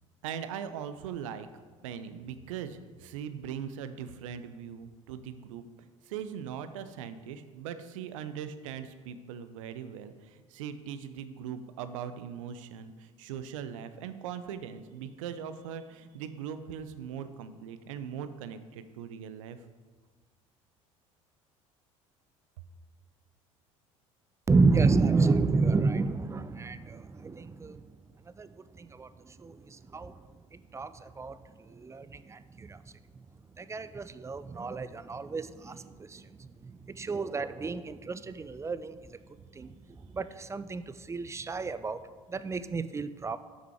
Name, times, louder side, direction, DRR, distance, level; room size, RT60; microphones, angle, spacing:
voice 1, 0.2-1.5 1.8-5.6 6.1-19.6, right 8 dB, 70° right, 11 dB, 0.6 m, -40 dB
voice 2, 24.5-27.8 28.4-30.2 30.5-32.8 33.6-38.9 39.5-42.0 42.3-43.4, right 4 dB, 15° right, 13 dB, 0.4 m, -30 dB
8.4 x 6.1 x 4.6 m, 1.4 s
figure-of-eight pair, 65°, 17 cm